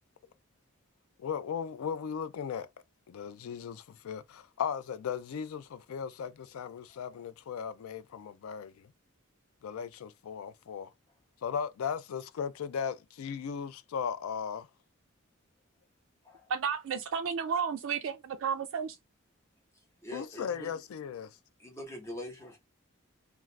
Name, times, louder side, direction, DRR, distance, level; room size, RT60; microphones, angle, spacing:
voice 1, 1.2-2.7 3.1-8.9 9.6-10.9 11.4-14.7 20.1-21.4, left 7 dB, 80° left, 0.3 m, -37 dB
voice 2, 16.5-19.0, right 6 dB, 65° right, 0.3 m, -32 dB
voice 3, 20.0-20.7 21.6-22.6, left 1 dB, 15° left, 1.0 m, -43 dB
2.4 x 2.3 x 3.1 m
head